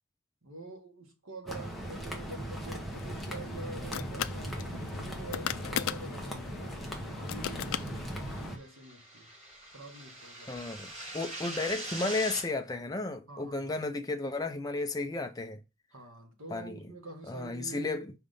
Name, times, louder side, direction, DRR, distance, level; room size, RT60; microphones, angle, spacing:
voice 1, 0.4-8.0 8.4-9.3 9.7-10.6 13.3-13.7 15.9-18.1, right 2 dB, 75° right, 1.7 m, -47 dB
sound 1, 1.5-8.6, right 1 dB, ahead, 1.1 m, -39 dB
sound 2, 2.9-8.5, left 9 dB, 80° left, 0.4 m, -39 dB
sound 3, 8.0-12.4, right 1 dB, 35° right, 3.1 m, -42 dB
voice 2, 10.5-15.6 16.5-16.8 17.3-18.1, left 3 dB, 20° left, 0.5 m, -33 dB
5.0 x 3.6 x 5.3 m
head